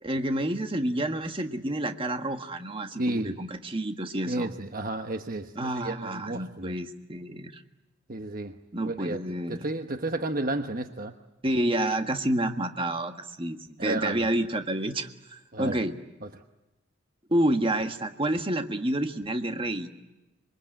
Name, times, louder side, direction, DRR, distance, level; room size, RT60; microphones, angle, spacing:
voice 1, 0.0-4.5 5.5-7.6 8.7-9.7 11.4-15.1 15.6-15.9 17.3-19.9, right 1 dB, 25° right, 6 dB, 1.6 m, -29 dB
voice 2, 3.0-3.3 4.3-6.8 8.1-11.1 13.8-14.3 15.5-15.8 16.2-16.3, right 2 dB, 45° right, 6 dB, 1.2 m, -32 dB
26.5 x 23.5 x 9.0 m, 1.0 s
head